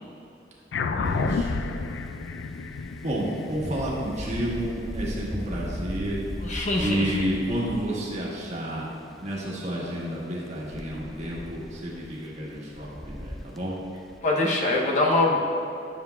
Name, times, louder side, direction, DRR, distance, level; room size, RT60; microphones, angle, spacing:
sound 1, 0.7-5.5, left 4 dB, 85° left, 0.4 m, -31 dB
voice 1, 0.9-1.5 3.0-6.3 6.7-8.8 9.2-13.8, equal, 40° right, -5 dB, 1.4 m, -30 dB
Wind, 1.1-14.2, equal, ahead, 0.3 m, -39 dB
voice 2, 6.4-7.2 14.2-15.5, left 2 dB, 45° left, -2 dB, 0.8 m, -23 dB
10.0 x 6.8 x 2.3 m, 2.7 s
head